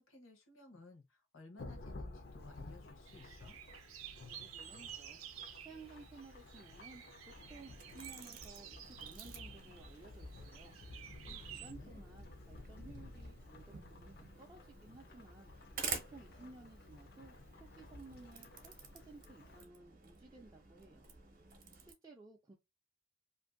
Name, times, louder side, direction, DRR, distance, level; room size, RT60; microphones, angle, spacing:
voice 1, 0.0-3.6 11.3-12.0, left 2 dB, 75° left, 0.9 m, -58 dB
Thunderstorm / Rain, 1.6-19.6, left 2 dB, 50° left, 0.4 m, -53 dB
sound 1, 3.1-11.7, right 10 dB, 85° right, 0.5 m, -52 dB
voice 2, 4.2-5.2 5.6-10.7 11.3-15.5 16.1-21.1 21.9-22.6, right 3 dB, 20° right, 0.3 m, -57 dB
sound 2, 7.3-21.9, right 5 dB, 45° right, 0.7 m, -50 dB
2.6 x 2.5 x 2.5 m
head